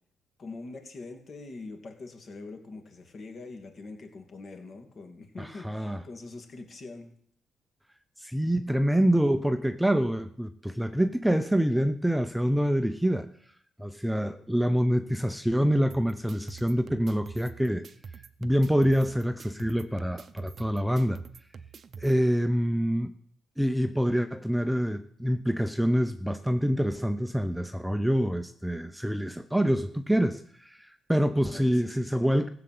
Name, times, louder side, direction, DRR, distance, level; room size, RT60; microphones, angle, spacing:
voice 1, 0.4-7.1 31.4-32.3, left 3 dB, 45° left, 4 dB, 2.6 m, -44 dB
voice 2, 5.4-6.0 8.2-13.3 13.8-17.8 18.4-21.2 22.0-23.1 23.6-32.5, equal, 5° right, 9 dB, 0.7 m, -26 dB
sound 1, 15.9-22.1, right 6 dB, 50° right, 0.7 m, -46 dB
15.5 x 6.8 x 7.7 m, 0.63 s
cardioid pair, 90°, 0 cm